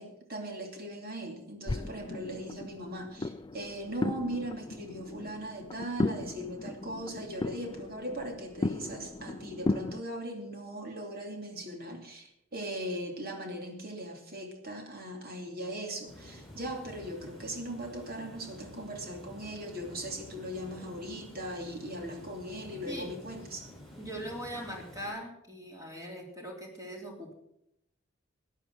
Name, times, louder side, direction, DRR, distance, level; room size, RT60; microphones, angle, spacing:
voice 1, 0.0-23.7, right 1 dB, 50° right, 3 dB, 2.8 m, -39 dB
sound 1, 1.7-10.0, left 2 dB, 20° left, 0.4 m, -36 dB
Water, 16.1-25.1, left 1 dB, ahead, 6.4 m, -50 dB
voice 2, 24.0-27.3, equal, 15° right, 0 dB, 3.4 m, -41 dB
14.0 x 10.0 x 6.2 m, 0.80 s
head